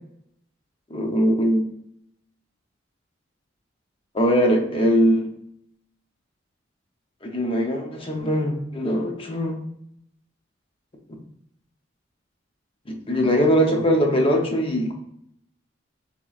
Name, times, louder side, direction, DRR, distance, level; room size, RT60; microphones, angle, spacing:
voice 1, 0.9-1.6 4.1-5.3 7.2-9.6 12.9-14.9, equal, 30° left, 3 dB, 0.7 m, -21 dB
7.0 x 3.0 x 2.4 m, 0.74 s
head